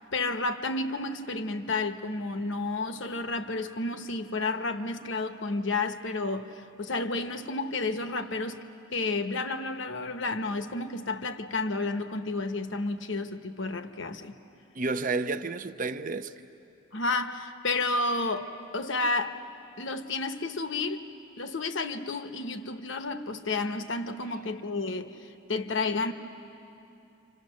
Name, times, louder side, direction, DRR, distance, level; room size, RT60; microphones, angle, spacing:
voice 1, 0.1-8.6 8.9-14.3 16.9-19.4 19.8-21.1 21.4-26.1, left 3 dB, 60° left, 1.0 m, -31 dB
voice 2, 14.7-16.3, right 3 dB, 40° right, 0.6 m, -30 dB
29.0 x 26.0 x 6.4 m
head